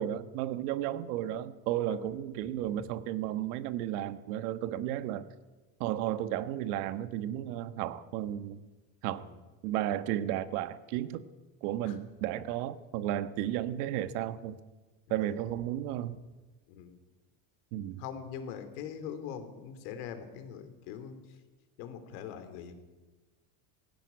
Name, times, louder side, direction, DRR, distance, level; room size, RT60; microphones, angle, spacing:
voice 1, 0.0-5.2 5.8-8.6 9.0-9.2 9.6-11.3 11.6-14.6 15.1-16.2 17.7-18.0, right 12 dB, 85° right, 13 dB, 1.4 m, -33 dB
voice 2, 2.5-2.9 9.2-9.4 11.8-12.0 15.1-15.2 16.7-17.0 18.0-21.2 21.8-22.7, left 8 dB, 85° left, 9 dB, 3.1 m, -42 dB
18.0 x 16.5 x 9.4 m, 1.2 s
cardioid pair, 150°, 44 cm